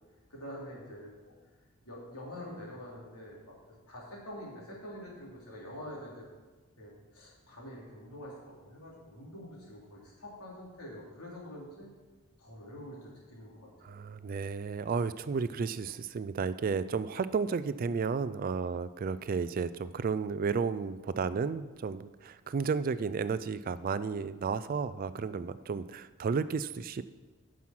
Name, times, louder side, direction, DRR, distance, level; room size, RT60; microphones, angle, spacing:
voice 1, 0.3-1.3 1.8-3.5 3.9-6.3 6.8-11.9 12.4-14.0, left 1 dB, 80° left, -4 dB, 3.4 m, -46 dB
voice 2, 13.8-27.0, right 5 dB, 40° right, 14 dB, 0.3 m, -33 dB
9.3 x 6.2 x 6.0 m, 1.3 s
head